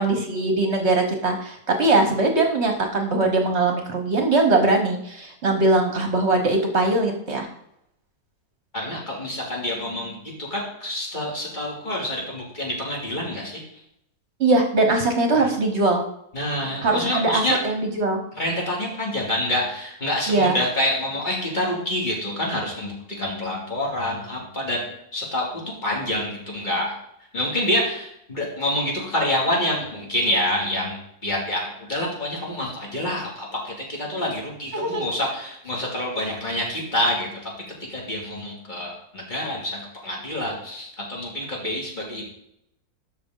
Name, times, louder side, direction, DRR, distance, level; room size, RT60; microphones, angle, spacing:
voice 1, 0.0-7.5 14.4-16.0 16.8-18.2 20.3-20.6 34.7-35.0, right 2 dB, 50° right, 4 dB, 1.3 m, -21 dB
voice 2, 8.7-13.6 15.3-15.5 16.3-17.6 18.4-24.8 25.1-26.9 27.3-37.5 37.9-42.2, left 1 dB, 30° left, -3 dB, 2.6 m, -27 dB
12.5 x 5.3 x 3.8 m, 0.77 s
omnidirectional pair, 1.6 m